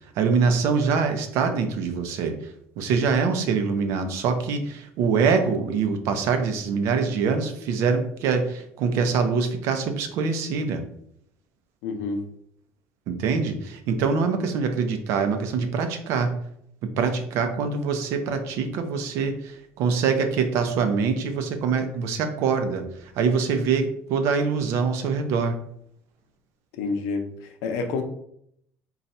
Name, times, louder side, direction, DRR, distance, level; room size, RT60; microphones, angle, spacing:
voice 1, 0.2-2.4 2.8-10.8 13.1-16.3 16.8-25.6, right 5 dB, 60° right, 7 dB, 0.6 m, -24 dB
voice 2, 11.8-12.2 26.8-27.2 27.6-28.0, left 4 dB, 85° left, 6 dB, 0.7 m, -27 dB
4.0 x 2.3 x 4.1 m, 0.70 s
cardioid pair, 175°, 5 cm